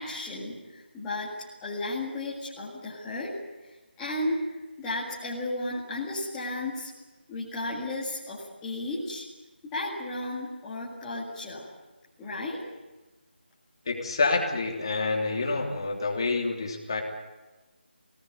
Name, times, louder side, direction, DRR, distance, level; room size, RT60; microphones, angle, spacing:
voice 1, 0.0-1.3 1.6-3.3 3.6-6.9 7.3-9.2 9.6-11.7 12.2-12.6, left 2 dB, 5° left, -11 dB, 2.1 m, -34 dB
voice 2, 13.9-17.0, left 3 dB, 25° left, 0 dB, 3.0 m, -27 dB
25.0 x 18.5 x 9.5 m, 1.2 s
figure-of-eight pair, 175°, 6 cm